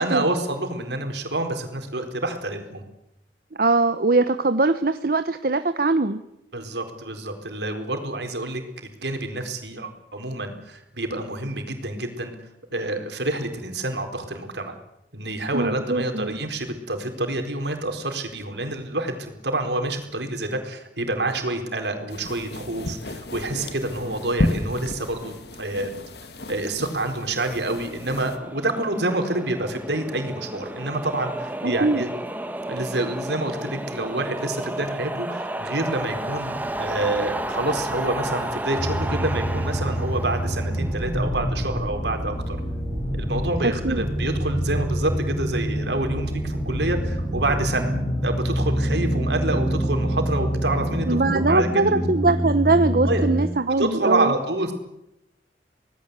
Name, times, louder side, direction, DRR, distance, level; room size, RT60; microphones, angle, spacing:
voice 1, 0.0-2.8 6.5-8.6 9.0-12.3 12.7-14.8 15.1-25.9 26.5-32.1 32.7-42.6 43.1-47.9 48.2-51.7 53.0-53.2 53.8-54.7, right 2 dB, 75° right, 5 dB, 4.3 m, -27 dB
voice 2, 3.6-6.2 15.5-16.4 31.6-32.0 43.6-44.1 51.1-54.3, right 3 dB, 55° right, 10 dB, 0.9 m, -21 dB
sound 1, 22.1-28.4, left 1 dB, 65° left, 2.1 m, -32 dB
sound 2, 27.3-41.6, right 1 dB, 10° right, 1.4 m, -32 dB
sound 3, 38.8-53.5, equal, 15° left, 7.0 m, -26 dB
26.0 x 18.5 x 8.2 m, 0.87 s
head